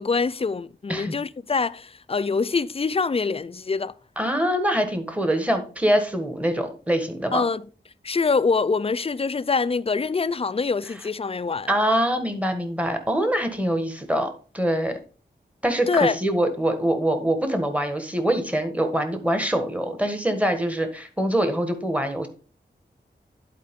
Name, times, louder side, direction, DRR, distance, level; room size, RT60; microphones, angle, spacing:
voice 1, 0.0-3.9 7.3-7.6 8.0-11.7 15.9-16.2, left 4 dB, 30° left, 0.4 m, -24 dB
voice 2, 4.2-7.4 11.7-15.0 15.6-22.3, right 1 dB, 5° right, 1.4 m, -24 dB
11.0 x 4.5 x 3.6 m
wide cardioid pair, 80°, 19 cm